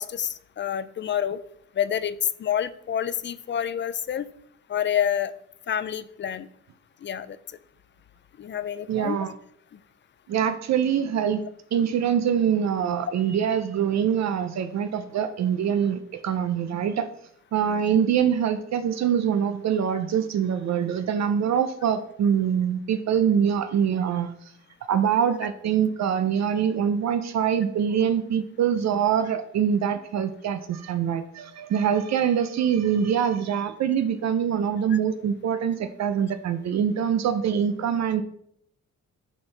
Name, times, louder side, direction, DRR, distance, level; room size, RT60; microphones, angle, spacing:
voice 1, 0.0-1.4 1.8-4.3 4.7-5.3 5.7-6.5 7.0-7.4 8.4-9.2 17.6-17.8, left 9 dB, 40° left, 15 dB, 0.4 m, -28 dB
voice 2, 8.9-9.3 10.3-11.4 11.7-17.1 17.5-24.5 24.9-38.2, right 8 dB, 65° right, 10 dB, 0.5 m, -24 dB
9.1 x 4.4 x 3.3 m, 0.70 s
cardioid pair, 115°, 30 cm